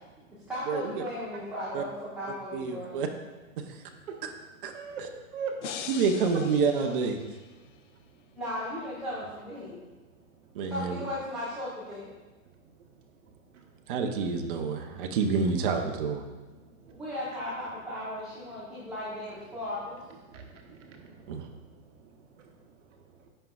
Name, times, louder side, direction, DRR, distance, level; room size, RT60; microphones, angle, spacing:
voice 1, 0.5-2.9 8.4-9.8 10.7-12.1 16.9-20.0, left 1 dB, ahead, -10 dB, 0.8 m, -36 dB
voice 2, 2.5-3.1 4.6-4.7 5.9-7.2 10.5-11.0 13.9-16.2 21.3-21.4, right 5 dB, 40° right, 4 dB, 0.6 m, -28 dB
voice 3, 3.9-4.4 4.7-5.8 6.8-6.9 7.6-7.7 8.1-8.2 10.4-10.5 12.8-12.9 13.3-13.7 16.5-17.0 20.2-23.3, right 5 dB, 60° right, 2 dB, 1.0 m, -43 dB
sound 1, 5.6-7.7, left 8 dB, 55° left, 0.5 m, -42 dB
8.9 x 5.3 x 2.3 m, 1.2 s
hypercardioid pair, 150°, 43 cm